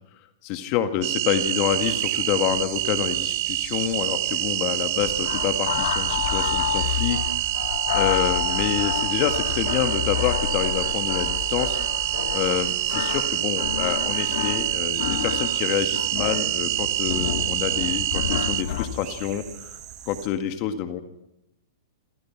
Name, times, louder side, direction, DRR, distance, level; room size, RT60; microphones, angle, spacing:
voice 1, 0.4-7.5 7.9-11.8 12.3-19.8 20.1-21.0, left 10 dB, 35° left, 9 dB, 2.0 m, -27 dB
sound 1, 1.0-18.6, right 15 dB, 55° right, 1.4 m, -26 dB
sound 2, 1.4-20.3, right 11 dB, 30° right, 4.2 m, -41 dB
sound 3, 5.0-18.9, left 11 dB, 60° left, 2.0 m, -30 dB
28.0 x 24.5 x 6.0 m, 0.84 s
hypercardioid pair, 145°, 2 cm